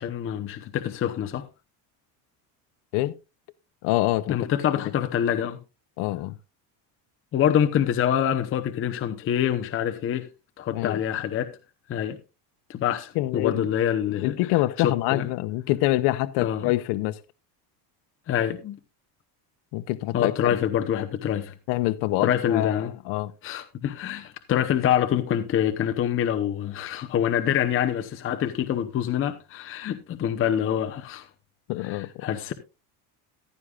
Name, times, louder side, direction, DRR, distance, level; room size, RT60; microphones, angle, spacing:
voice 1, 0.0-1.5 4.3-5.6 7.3-10.3 10.6-11.5 11.9-12.2 12.7-14.5 14.8-15.3 16.4-16.7 18.3-18.8 20.1-21.5 22.2-22.9 23.4-31.3 31.8-32.5, left 10 dB, 30° left, 0.8 m, -26 dB
voice 2, 3.8-4.4 6.0-6.3 10.7-11.0 13.2-13.7 14.1-17.2 19.7-20.5 21.7-23.3 31.7-32.2, left 17 dB, 75° left, 0.7 m, -26 dB
15.0 x 11.0 x 2.4 m
cardioid pair, 160°, 43 cm